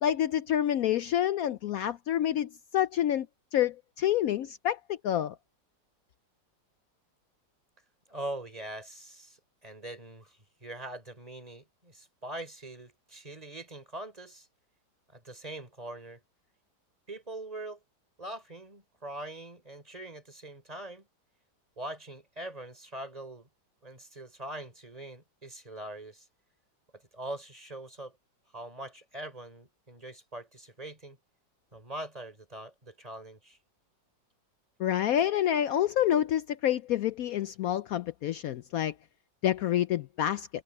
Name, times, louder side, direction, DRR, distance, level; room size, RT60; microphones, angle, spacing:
voice 1, 0.0-3.3 3.5-5.3 34.8-38.9 39.4-40.5, left 11 dB, 75° left, 0.8 m, -28 dB
voice 2, 8.1-14.5 15.1-16.2 17.1-17.8 18.2-21.1 21.8-23.5 23.8-26.3 26.9-28.2 28.5-31.2 31.7-33.6, right 1 dB, 20° right, 4.5 m, -42 dB
omnidirectional pair, 2.0 m